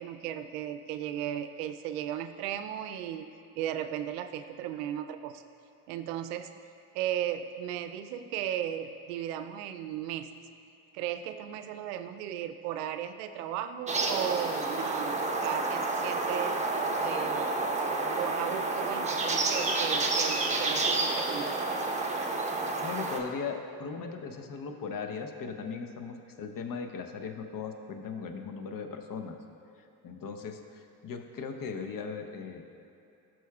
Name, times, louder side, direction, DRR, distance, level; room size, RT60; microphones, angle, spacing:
voice 1, 0.0-5.4 5.9-6.5 6.9-10.3 10.9-16.6 17.0-17.6 18.1-21.6, right 10 dB, 90° right, 9 dB, 0.5 m, -36 dB
sound 1, 13.9-23.2, right 3 dB, 15° right, 0.9 m, -29 dB
voice 2, 22.8-29.4 30.0-32.6, left 5 dB, 45° left, 6 dB, 0.9 m, -38 dB
13.5 x 6.1 x 2.4 m, 2.8 s
supercardioid pair, 70°, 46 cm